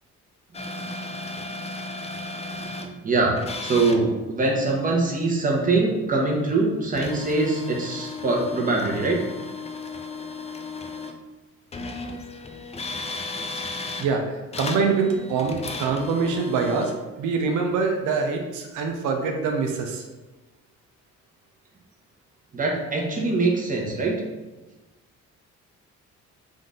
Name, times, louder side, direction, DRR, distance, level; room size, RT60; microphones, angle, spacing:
sound 1, 0.5-2.9 3.4-4.0 6.9-11.2 11.7-14.1 14.5-16.9, left 3 dB, 20° left, 0.4 m, -35 dB
voice 1, 2.6-3.3 3.6-9.2 22.5-24.2, right 3 dB, 25° right, -2 dB, 1.0 m, -23 dB
voice 2, 14.0-16.9 17.2-20.0, right 4 dB, 85° right, 3 dB, 0.5 m, -24 dB
3.7 x 2.6 x 3.6 m, 1.2 s
cardioid pair, 90°, 30 cm